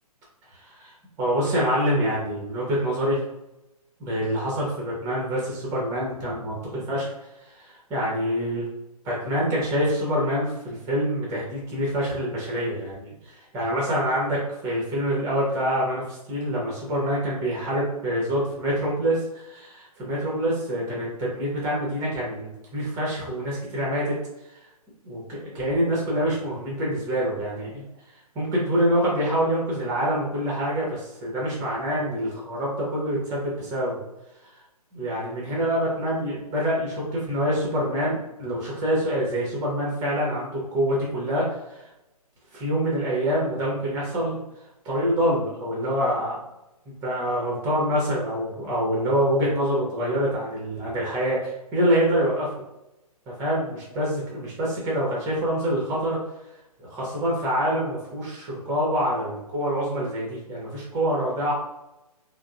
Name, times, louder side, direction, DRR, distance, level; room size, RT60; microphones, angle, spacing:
voice 1, 0.5-3.2 4.0-7.1 7.4-8.7 9.0-24.2 25.1-27.8 28.3-34.0 34.9-41.9 42.5-44.4 44.8-46.4 47.0-52.5 53.4-56.2 56.8-61.5, equal, 15° right, -4 dB, 0.8 m, -26 dB
3.6 x 2.1 x 2.4 m, 0.93 s
figure-of-eight pair, 130°, 20 cm